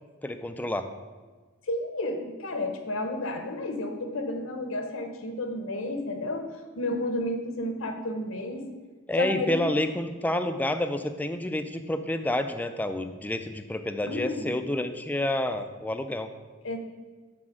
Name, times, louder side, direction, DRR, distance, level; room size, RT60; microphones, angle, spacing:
voice 1, 0.2-0.9 9.1-16.3, left 1 dB, 10° left, 8 dB, 0.3 m, -29 dB
voice 2, 1.7-6.4 6.8-8.6 9.2-9.8 14.0-14.6 16.6-16.8, left 1 dB, 70° left, 5 dB, 0.9 m, -31 dB
6.1 x 4.3 x 6.1 m, 1.4 s
head